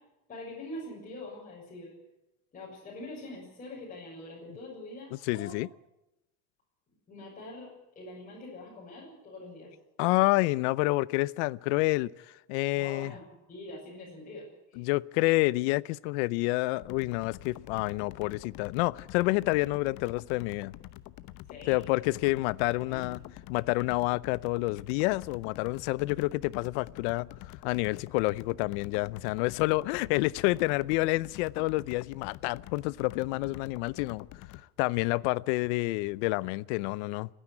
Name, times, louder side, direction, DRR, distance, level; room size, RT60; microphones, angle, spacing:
voice 1, 0.3-1.9 2.5-5.6 7.1-9.7 12.7-14.8 21.5-21.8 22.7-23.1, left 2 dB, 25° left, 6.9 m, -44 dB
voice 2, 5.3-5.7 10.0-12.1 12.5-13.1 14.8-20.7 21.7-23.2 23.5-27.3 27.6-34.3 34.8-37.3, left 21 dB, 80° left, 0.7 m, -28 dB
sound 1, 16.8-34.6, left 15 dB, 60° left, 1.0 m, -47 dB
29.5 x 10.0 x 9.9 m
cardioid pair, 135°, 34 cm